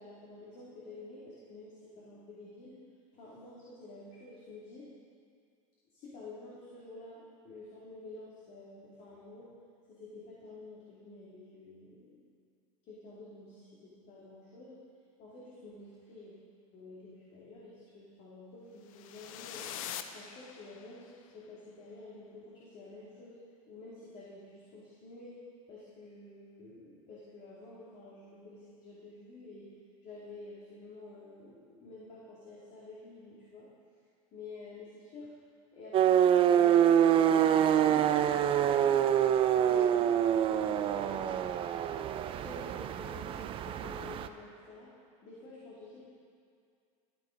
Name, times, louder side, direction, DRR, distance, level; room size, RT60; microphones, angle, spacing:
voice 1, 0.0-2.8 3.1-4.9 5.9-9.5 9.9-12.2 12.8-14.8 15.2-16.3 16.7-19.7 20.1-23.4 23.7-25.4 25.7-29.7 30.0-33.7 34.3-35.3 35.7-38.9 39.2-40.1 40.5-41.6 42.3-44.9 45.2-46.1, left 2 dB, 45° left, -7 dB, 2.6 m, -50 dB
sound 1, 18.9-21.1, left 10 dB, 80° left, 0.7 m, -43 dB
sound 2, 35.9-44.3, right 10 dB, 30° right, 0.5 m, -26 dB
13.5 x 9.6 x 5.2 m, 2.3 s
supercardioid pair, 140°, 18 cm